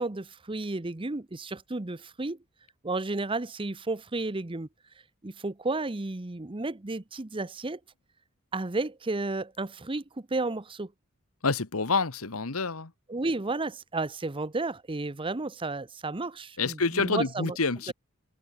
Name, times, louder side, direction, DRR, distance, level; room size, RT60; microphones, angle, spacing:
voice 1, 0.0-2.4 2.8-4.7 5.2-7.8 8.5-10.9 13.1-17.6, right 2 dB, 25° right, 0.8 m, -32 dB
voice 2, 11.4-12.9 16.6-17.9, left 4 dB, 80° left, 1.6 m, -27 dB
head